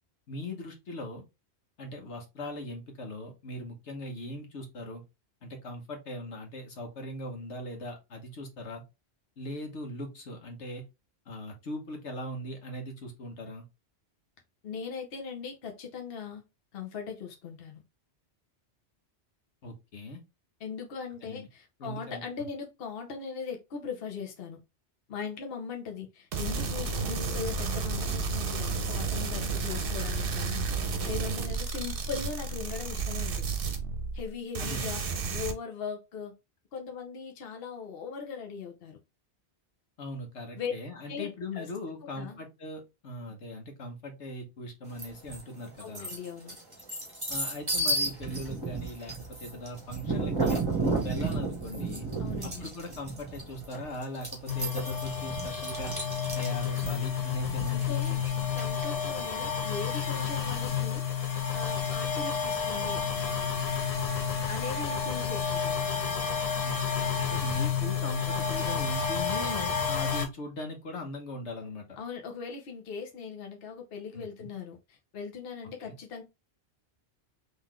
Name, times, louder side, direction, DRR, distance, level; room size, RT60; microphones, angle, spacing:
voice 1, 0.3-1.2 1.8-5.0 5.4-8.8 9.4-10.8 11.3-13.6 19.6-20.2 21.2-21.5 21.8-22.2 34.6-35.0 40.0-46.1 47.3-50.6 51.0-52.1 52.4-56.0 56.3-58.5 66.6-72.0 74.1-74.5 75.8-76.0, left 1 dB, 80° left, 1.4 m, -40 dB
voice 2, 14.6-16.4 16.7-17.8 20.6-24.6 25.1-33.5 34.1-36.3 36.7-39.0 40.5-40.7 41.1-41.3 41.6-41.7 42.2-42.4 45.8-46.6 52.2-52.7 57.7-58.2 58.5-63.0 64.5-66.0 72.0-76.2, left 6 dB, 60° left, 1.0 m, -39 dB
sound 1, 26.3-34.3 34.5-35.5, right 4 dB, 55° right, 0.9 m, -32 dB
sound 2, 45.0-45.4 45.8-59.1, right 2 dB, 20° right, 1.2 m, -33 dB
sound 3, 54.5-70.3, left 7 dB, 40° left, 0.7 m, -30 dB
3.9 x 3.1 x 3.1 m
omnidirectional pair, 1.1 m